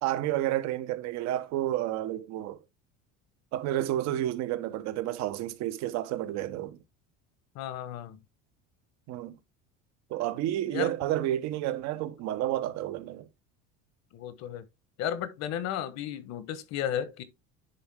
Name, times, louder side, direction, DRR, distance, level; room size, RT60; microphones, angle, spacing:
voice 1, 0.0-2.6 3.5-6.8 9.1-9.4 10.1-13.3, right 13 dB, 65° right, 1.1 m, -30 dB
voice 2, 7.5-8.2 10.7-10.9 14.1-14.6 15.0-17.2, left 10 dB, 60° left, 1.3 m, -33 dB
10.5 x 3.7 x 3.7 m
cardioid pair, 125°, 30 cm